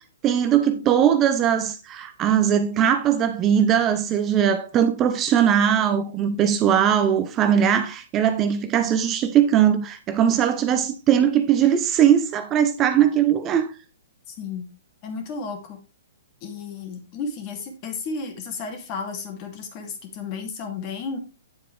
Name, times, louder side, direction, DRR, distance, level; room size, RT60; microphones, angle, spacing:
voice 1, 0.2-13.7, right 9 dB, 25° right, 0.9 m, -20 dB
voice 2, 14.3-14.7 15.0-15.8 16.4-21.2, left 4 dB, 35° left, 2.7 m, -33 dB
9.3 x 7.6 x 3.4 m
hypercardioid pair, 120°, 0 cm